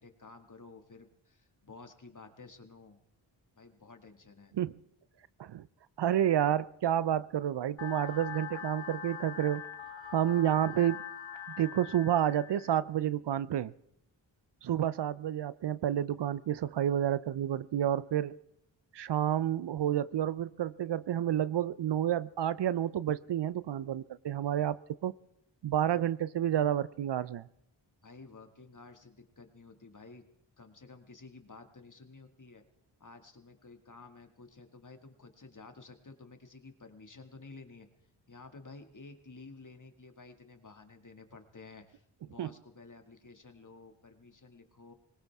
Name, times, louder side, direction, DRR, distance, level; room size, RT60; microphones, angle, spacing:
voice 1, 0.0-3.0 3.6-4.5 25.9-26.1 28.0-30.2 30.6-32.6 33.0-37.9 38.3-44.9, left 3 dB, 40° left, 6 dB, 2.1 m, -52 dB
voice 2, 6.0-9.6 10.1-11.0 11.6-13.7 14.6-18.4 18.9-25.1 25.6-27.5 42.4-42.5, right 10 dB, 60° right, 18 dB, 0.6 m, -30 dB
sound 1, 7.8-12.8, left 9 dB, 70° left, 1.6 m, -43 dB
20.5 x 19.0 x 3.6 m, 0.78 s
cardioid pair, 45°, 48 cm